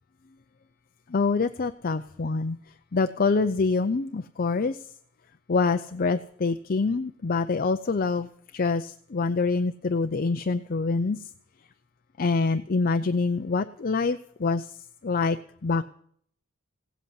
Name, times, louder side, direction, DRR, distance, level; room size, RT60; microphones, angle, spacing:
voice 1, 1.1-2.6 2.9-4.8 5.5-11.2 12.2-14.7 15.0-15.4 15.6-15.8, left 4 dB, 40° left, 9 dB, 0.5 m, -25 dB
17.0 x 8.2 x 9.6 m, 0.63 s
head